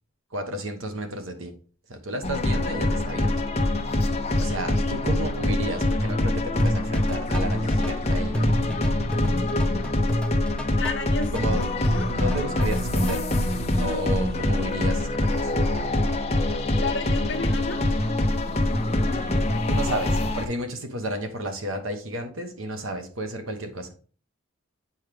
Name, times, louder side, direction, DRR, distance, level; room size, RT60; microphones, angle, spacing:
voice 1, 0.3-1.5 1.9-3.4 4.3-8.5 11.3-11.6 12.2-13.4 13.8-15.5 19.7-23.9, right 1 dB, 75° right, 6 dB, 1.1 m, -32 dB
sound 1, 2.2-20.5, left 1 dB, 30° left, 0.8 m, -24 dB
sound 2, 6.6-13.4, equal, 5° left, 0.4 m, -31 dB
voice 2, 10.8-11.3 11.9-12.1 16.8-17.8, left 3 dB, 55° left, 4 dB, 1.1 m, -32 dB
8.0 x 4.6 x 3.4 m, 0.40 s
head